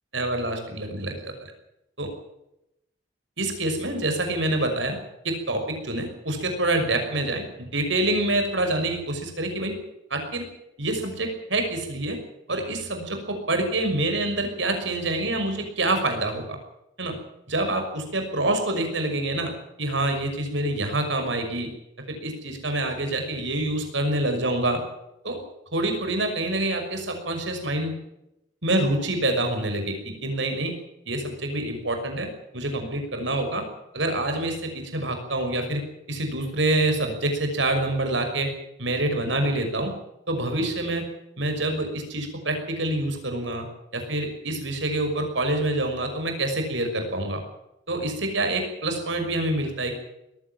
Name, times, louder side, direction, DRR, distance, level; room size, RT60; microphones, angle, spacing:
voice 1, 0.1-1.5 2.0-2.1 3.4-5.0 5.2-9.8 10.1-10.5 10.8-12.2 12.5-16.6 17.0-17.2 17.5-19.5 19.8-21.7 22.1-24.8 25.2-25.4 25.7-27.9 28.6-30.7 31.1-32.3 32.5-33.6 33.9-35.8 36.1-38.5 38.8-39.9 40.3-41.0 41.4-43.7 43.9-47.4 47.9-49.9, right 2 dB, 75° right, 5 dB, 6.0 m, -26 dB
20.5 x 15.5 x 9.0 m, 0.85 s
head